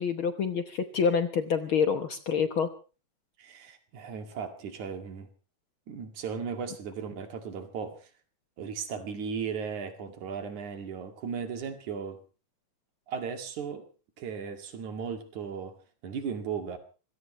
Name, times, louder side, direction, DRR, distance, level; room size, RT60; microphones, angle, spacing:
voice 1, 0.0-2.7, left 6 dB, 60° left, 1.5 m, -27 dB
voice 2, 3.4-5.3 5.9-8.0 8.6-12.2 13.1-13.8 14.2-15.7 16.0-16.8, right 6 dB, 75° right, 3.6 m, -36 dB
26.0 x 17.0 x 3.1 m
omnidirectional pair, 3.4 m